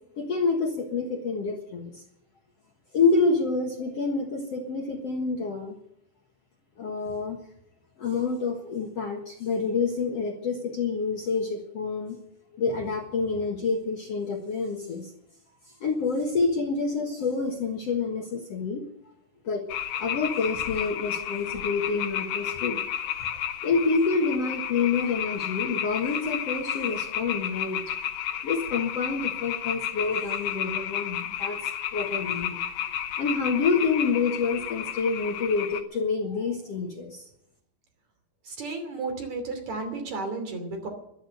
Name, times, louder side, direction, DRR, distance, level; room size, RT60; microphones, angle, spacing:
voice 1, 0.2-2.0 2.9-5.8 6.8-7.4 8.0-12.2 12.6-15.1 15.8-18.8 19.4-19.7 20.0-22.8 23.6-27.8 28.4-32.6 33.2-37.2, left 4 dB, 55° left, 2 dB, 2.0 m, -27 dB
sound 1, 19.7-35.8, left 10 dB, 70° left, 2.4 m, -32 dB
voice 2, 38.4-40.9, right 3 dB, 50° right, 5 dB, 4.0 m, -33 dB
13.0 x 12.5 x 8.0 m, 0.78 s
omnidirectional pair, 4.4 m